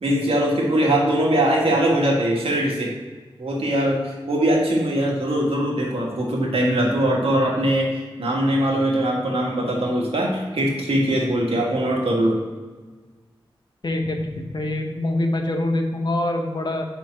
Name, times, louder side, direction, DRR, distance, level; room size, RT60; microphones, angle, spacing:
voice 1, 0.0-2.9 3.4-12.4, right 1 dB, 85° right, -2 dB, 1.7 m, -21 dB
voice 2, 13.8-16.8, left 1 dB, 50° left, 3 dB, 0.9 m, -24 dB
5.4 x 4.5 x 6.2 m, 1.3 s
wide cardioid pair, 105°, 10 cm